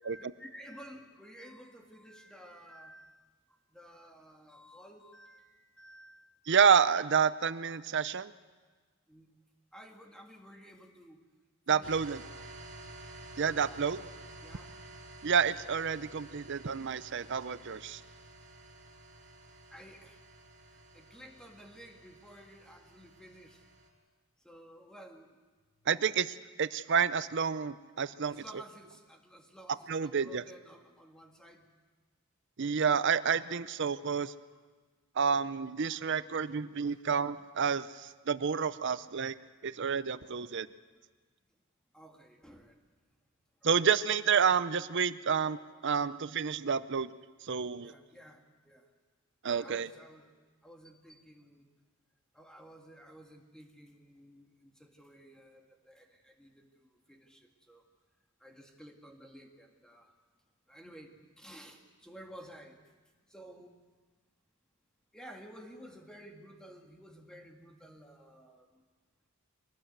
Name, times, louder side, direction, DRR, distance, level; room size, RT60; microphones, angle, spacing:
voice 1, 0.0-3.2 3.7-6.6 9.1-9.3 9.7-11.2 11.7-11.9 14.4-14.7 19.7-20.2 20.7-23.6 24.4-25.3 28.2-31.7 34.5-34.6 36.9-37.0 41.9-42.8 43.6-43.9 47.8-48.9 49.5-50.3 50.6-51.7 52.3-57.8 58.4-60.1 60.7-62.8 63.3-63.7 65.1-68.8, equal, 5° left, 2 dB, 2.0 m, -53 dB
voice 2, 6.5-8.3 11.7-12.2 13.4-14.0 15.2-18.0 25.9-26.3 26.6-28.4 29.9-30.4 32.6-34.3 35.2-39.3 39.6-40.7 43.6-47.1 47.4-47.9 49.4-49.9, right 6 dB, 55° right, 15 dB, 0.6 m, -29 dB
sound 1, 11.8-23.9, right 2 dB, 40° right, 6.0 m, -51 dB
23.5 x 18.5 x 8.1 m, 1.4 s
head